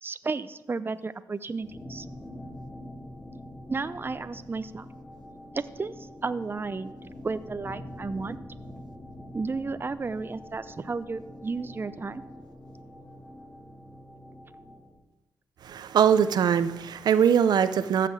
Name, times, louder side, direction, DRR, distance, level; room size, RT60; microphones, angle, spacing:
voice 1, 0.0-2.1 3.7-4.9 5.5-7.0 7.2-8.4 9.3-12.2, right 4 dB, 30° right, 13 dB, 0.6 m, -33 dB
sound 1, 1.6-14.9, left 1 dB, 15° left, 3.6 m, -44 dB
voice 2, 15.6-18.1, right 8 dB, 80° right, 12 dB, 0.6 m, -22 dB
14.5 x 5.9 x 7.9 m, 1.0 s
cardioid pair, 65°, 7 cm